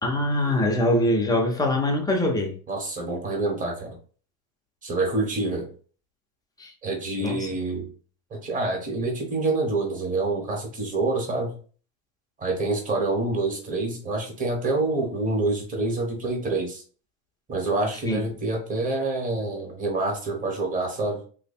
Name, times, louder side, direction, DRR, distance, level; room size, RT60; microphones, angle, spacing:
voice 1, 0.0-2.6 6.6-6.7 7.2-7.5 18.1-18.2, left 1 dB, 10° left, 0.6 m, -23 dB
voice 2, 2.7-3.9 4.8-5.7 6.8-7.9 8.3-11.5 12.4-16.8 17.5-21.2, right 2 dB, 20° right, 1.1 m, -27 dB
3.0 x 2.2 x 4.2 m
supercardioid pair, 130°, 42 cm